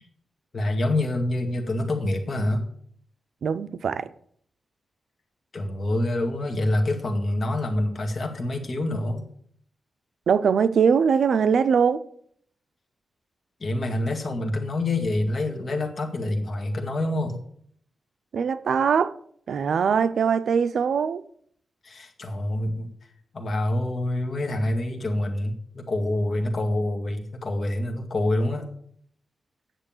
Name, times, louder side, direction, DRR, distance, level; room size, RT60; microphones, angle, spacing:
voice 1, 0.5-2.7 5.5-9.2 13.6-17.4 21.8-22.9 23.3-28.7, left 1 dB, 45° left, 2.0 m, -26 dB
voice 2, 3.4-4.1 10.3-12.0 18.3-19.1 19.5-21.2, right 6 dB, 75° right, 0.6 m, -22 dB
9.2 x 6.9 x 7.2 m
wide cardioid pair, 130°, 0 cm